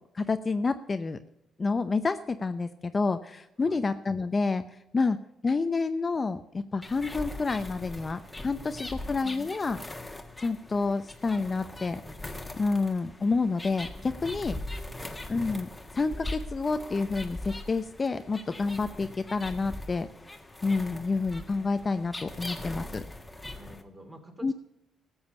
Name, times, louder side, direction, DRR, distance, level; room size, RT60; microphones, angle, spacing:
voice 1, 0.1-1.2 1.6-4.6 4.9-5.2 5.4-9.8 10.4-12.0 12.5-14.6 15.3-15.7 15.9-20.1 20.6-23.0 24.4-24.5, left 4 dB, 30° left, 9 dB, 0.7 m, -29 dB
sound 1, 6.8-23.8, left 1 dB, 15° left, 1.5 m, -41 dB
voice 2, 8.7-9.2 14.2-15.2 23.5-24.5, right 1 dB, 20° right, 4 dB, 3.0 m, -51 dB
14.0 x 7.3 x 7.0 m, 0.85 s
cardioid pair, 80°, 0 cm